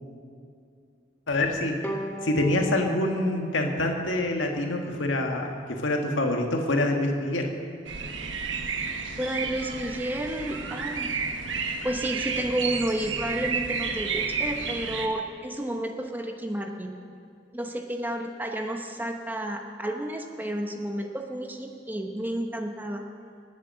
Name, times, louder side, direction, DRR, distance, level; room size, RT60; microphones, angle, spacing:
voice 1, 1.3-1.8 2.2-7.5, left 1 dB, 90° left, 2 dB, 1.7 m, -26 dB
Bowed string instrument, 1.8-5.2, right 1 dB, 10° left, 1.3 m, -39 dB
sound 1, 7.9-15.1, right 5 dB, 75° right, 1.3 m, -31 dB
voice 2, 9.2-11.1 11.8-17.0 17.5-23.0, right 1 dB, 10° right, 3 dB, 0.9 m, -31 dB
19.5 x 8.4 x 7.6 m, 2.4 s
head